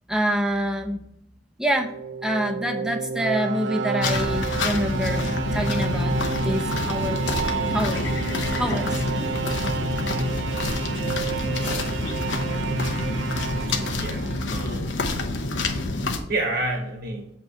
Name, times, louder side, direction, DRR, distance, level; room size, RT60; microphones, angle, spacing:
voice 1, 0.1-1.0 1.6-1.9 2.2-5.3 5.5-6.2 6.4-7.2 7.7-8.1 8.5-9.3 13.7-13.9 15.8-16.3, equal, 5° right, 4 dB, 0.7 m, -27 dB
sound 1, 1.7-14.7, right 3 dB, 75° right, 0.5 m, -29 dB
sound 2, 4.0-16.2, left 2 dB, 85° left, 0.9 m, -28 dB
sound 3, 7.1-7.5 7.9-8.2 8.7-9.4 9.9-10.0 10.4-10.7 11.0-11.8, left 3 dB, 70° left, 2.0 m, -38 dB
voice 2, 13.9-14.9 16.3-17.3, right 2 dB, 55° right, 1 dB, 1.1 m, -29 dB
8.0 x 3.1 x 5.8 m, 0.78 s
head